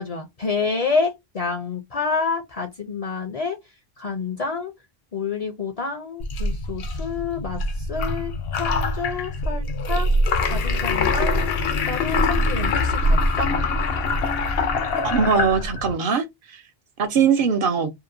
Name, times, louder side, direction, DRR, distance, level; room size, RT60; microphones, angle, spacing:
voice 1, 0.0-3.6 4.0-4.7 5.1-10.1 10.5-11.6 11.8-13.5, left 4 dB, 45° left, 0.5 m, -28 dB
sound 1, 6.2-15.9, left 2 dB, 75° left, 0.8 m, -23 dB
voice 2, 15.0-16.6 17.0-17.9, right 6 dB, 65° right, 0.7 m, -21 dB
2.8 x 2.1 x 2.5 m
omnidirectional pair, 1.0 m